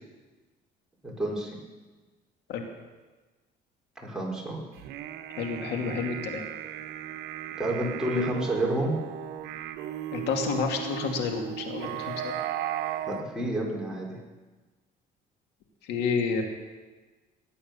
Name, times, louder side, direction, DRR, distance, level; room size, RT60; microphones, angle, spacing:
voice 1, 1.0-1.5 4.0-4.6 7.5-9.0 13.0-14.2, right 1 dB, 5° right, -4 dB, 5.0 m, -29 dB
sound 1, 4.8-13.2, right 11 dB, 80° right, 1.0 m, -36 dB
voice 2, 5.4-6.5 10.1-12.2 15.9-16.4, left 5 dB, 85° left, 3 dB, 2.5 m, -29 dB
20.0 x 9.1 x 6.8 m, 1.3 s
cardioid pair, 110°, 17 cm